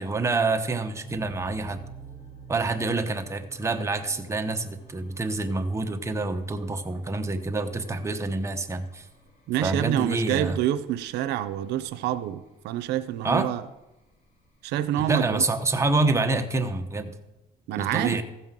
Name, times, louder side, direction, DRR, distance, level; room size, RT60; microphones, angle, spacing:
voice 1, 0.0-1.8 2.5-9.0 9.6-10.6 13.2-13.5 15.1-17.1 17.8-18.2, right 3 dB, 15° right, 5 dB, 1.0 m, -27 dB
sound 1, 1.0-16.8, right 4 dB, 50° left, 3.3 m, -51 dB
voice 2, 9.5-13.6 14.6-15.4 17.7-18.2, right 12 dB, 85° right, 11 dB, 0.6 m, -27 dB
14.5 x 5.6 x 7.4 m, 0.99 s
cardioid pair, 110°, 17 cm